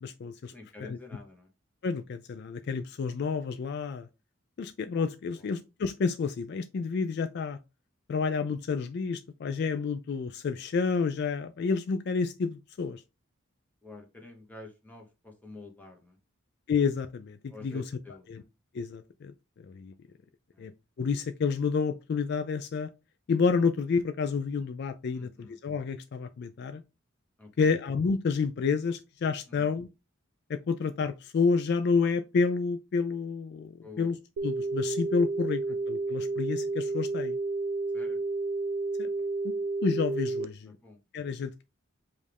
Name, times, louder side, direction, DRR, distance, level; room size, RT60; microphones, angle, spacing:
voice 1, 0.0-0.5 0.8-1.0 1.8-4.1 4.6-7.6 8.1-13.0 16.7-17.8 18.3-18.4 18.7-19.3 19.7-19.9 20.6-20.7 21.0-22.9 23.3-26.8 27.6-29.9 30.5-34.2 34.4-35.6 35.9-37.4 39.0-39.1 39.8-40.7 41.1-41.6, left 5 dB, 55° left, 0.3 m, -29 dB
voice 2, 0.5-1.5 5.3-5.5 13.8-16.2 17.5-18.4 20.5-20.7 25.1-25.6 27.4-27.7 29.5-29.7 33.8-34.1 37.9-38.2 40.7-41.0, left 3 dB, 10° left, 1.0 m, -48 dB
sound 1, 34.4-40.5, right 3 dB, 75° right, 0.4 m, -31 dB
5.2 x 2.5 x 3.3 m
head